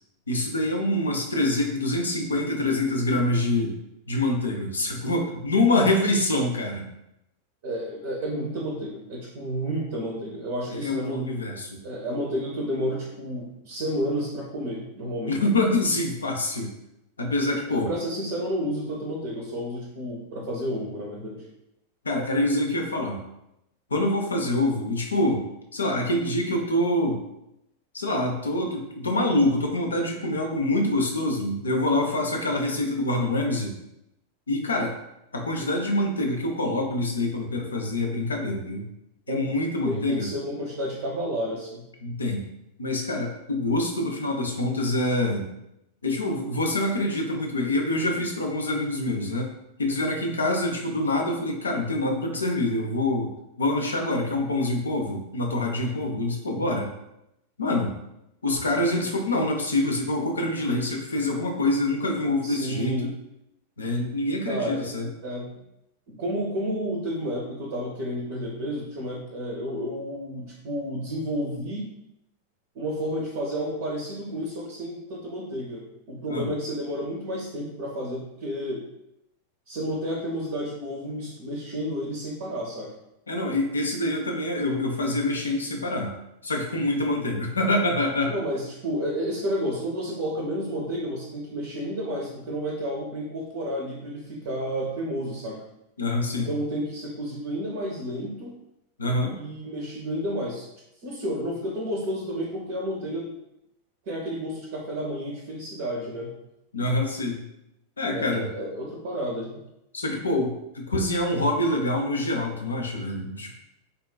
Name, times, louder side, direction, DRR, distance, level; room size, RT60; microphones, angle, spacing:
voice 1, 0.3-3.8 4.1-6.9 10.7-11.8 15.3-16.7 17.2-17.9 22.0-23.2 23.9-25.4 25.7-27.2 27.9-33.7 34.5-34.9 35.3-38.8 39.3-40.3 42.0-42.4 42.8-45.5 46.0-49.5 49.8-53.3 53.6-56.9 57.6-57.9 58.4-63.1 63.8-65.1 76.3-76.5 83.3-86.1 86.4-88.3 96.0-96.5 99.0-99.4 106.7-107.4 108.0-108.5 109.9-113.5, left 1 dB, 75° left, 1 dB, 0.4 m, -25 dB
voice 2, 7.6-11.5 11.8-15.4 17.7-21.4 39.3-39.5 39.8-41.9 62.4-63.1 64.5-64.9 65.2-65.5 66.1-71.9 72.7-75.8 76.1-78.9 79.7-82.9 88.3-95.6 96.3-98.5 99.3-100.7 101.0-103.3 104.1-106.3 108.1-109.6, equal, 50° right, -3 dB, 0.5 m, -31 dB
3.4 x 2.2 x 2.2 m, 0.85 s
figure-of-eight pair, 90°, 0 cm